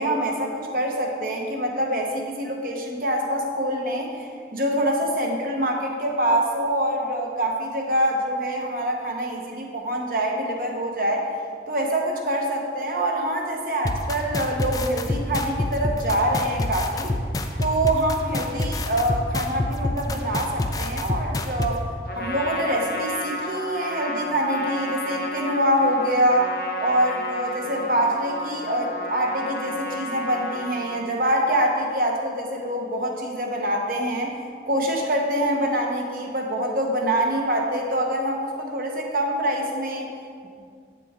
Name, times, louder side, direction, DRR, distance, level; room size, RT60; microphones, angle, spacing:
voice 1, 0.0-11.3 11.7-17.1 17.6-21.8 22.1-26.5 26.8-34.3 34.7-40.1, right 1 dB, 50° right, 1 dB, 1.0 m, -25 dB
sound 1, 13.8-21.7, left 2 dB, 20° left, 0.3 m, -26 dB
Trumpet, 22.1-31.1, left 1 dB, 55° left, 0.7 m, -32 dB
8.3 x 6.7 x 3.7 m, 2.1 s
head